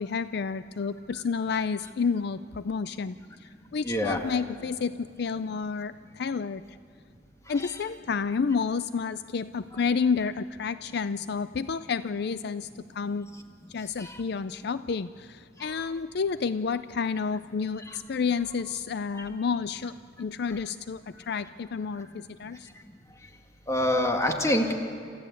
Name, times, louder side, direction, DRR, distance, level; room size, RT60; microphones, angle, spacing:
voice 1, 0.0-6.6 7.5-13.3 13.7-22.7, left 5 dB, 60° left, 13 dB, 0.4 m, -30 dB
voice 2, 3.8-4.2 7.6-7.7 14.0-14.2 15.6-15.7 17.9-18.0 19.1-19.2 23.7-24.7, left 1 dB, 15° left, 3 dB, 2.0 m, -26 dB
28.0 x 14.5 x 8.4 m, 2.5 s
head